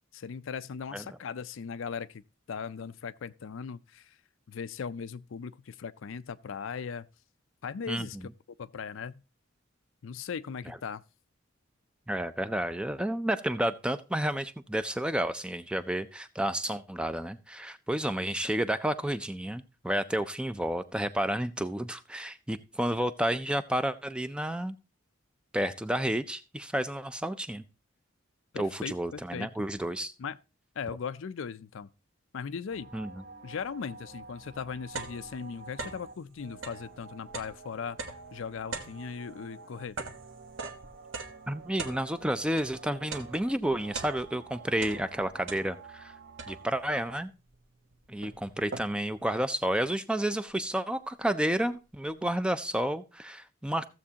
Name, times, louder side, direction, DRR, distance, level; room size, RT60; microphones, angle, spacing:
voice 1, 0.1-2.2 2.5-4.1 4.5-7.1 7.6-8.2 8.6-9.1 10.0-11.0 28.5-29.5 30.2-30.4 30.8-31.9 32.3-32.9 33.4-38.0 38.3-40.0, left 6 dB, 70° left, 0.4 m, -38 dB
voice 2, 12.1-24.8 25.5-27.6 28.6-30.1 32.9-33.1 41.5-46.1 46.5-47.3 48.1-53.9, right 1 dB, 5° right, 0.4 m, -31 dB
sound 1, 32.7-47.2, right 4 dB, 55° right, 0.8 m, -50 dB
sound 2, 34.0-34.1 34.5-36.2 36.5-42.8 43.1-44.5 44.8-46.0 46.4-46.9 47.5-47.6 47.9-49.2, right 4 dB, 70° right, 1.1 m, -41 dB
15.0 x 7.3 x 2.8 m
head